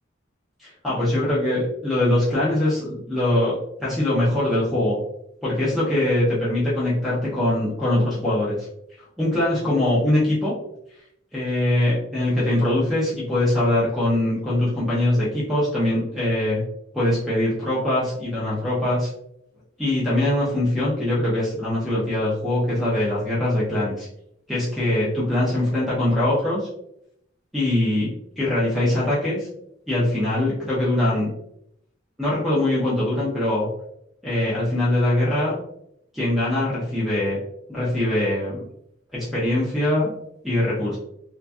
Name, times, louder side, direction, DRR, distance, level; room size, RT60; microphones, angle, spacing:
voice 1, 0.6-5.0 5.4-8.6 9.2-10.5 11.3-16.6 16.9-19.1 19.8-24.1 24.5-26.7 27.5-29.5 29.9-31.3 32.2-33.7 34.2-35.6 36.1-37.4 37.7-38.6 39.1-40.1 40.4-41.0, left 1 dB, ahead, -8 dB, 0.5 m, -22 dB
2.5 x 2.2 x 2.2 m, 0.75 s
head